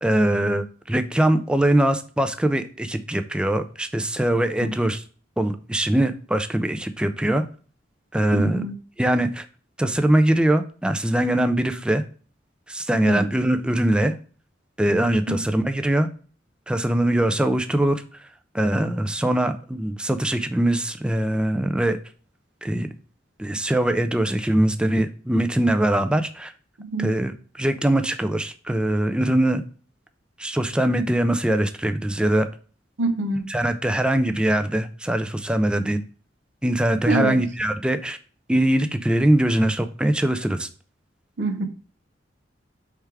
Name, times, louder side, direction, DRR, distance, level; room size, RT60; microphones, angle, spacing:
voice 1, 0.0-5.0 5.4-7.4 8.1-8.6 9.0-9.5 9.8-12.0 12.7-14.1 14.8-16.1 16.7-18.0 18.5-22.0 22.6-22.9 23.4-26.5 27.0-29.6 30.4-32.5 33.5-36.0 36.6-38.2 38.5-40.7, right 1 dB, 5° right, 0.3 m, -22 dB
voice 2, 8.3-8.7 13.0-13.3 15.3-15.4 26.8-27.2 33.0-33.5 37.1-37.4 41.4-41.6, right 2 dB, 85° right, 0.7 m, -25 dB
4.7 x 3.4 x 3.3 m
head